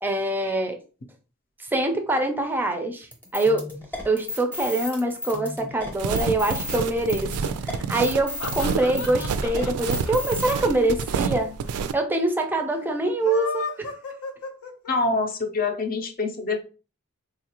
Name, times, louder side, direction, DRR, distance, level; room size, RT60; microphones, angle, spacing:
voice 1, 0.0-0.8 1.6-3.7 4.0-7.3 7.6-11.5 11.9-13.9, right 2 dB, 10° right, 5 dB, 0.4 m, -24 dB
sound 1, 3.1-10.6, left 2 dB, 10° left, 0.8 m, -35 dB
sound 2, 5.9-11.9, right 5 dB, 80° right, 0.3 m, -28 dB
sound 3, 8.0-11.4 11.7-11.8 12.0-12.1 13.0-15.2, left 3 dB, 90° left, 0.7 m, -34 dB
voice 2, 14.9-16.6, left 3 dB, 40° left, 6 dB, 0.6 m, -25 dB
3.8 x 2.4 x 2.9 m, 0.35 s
head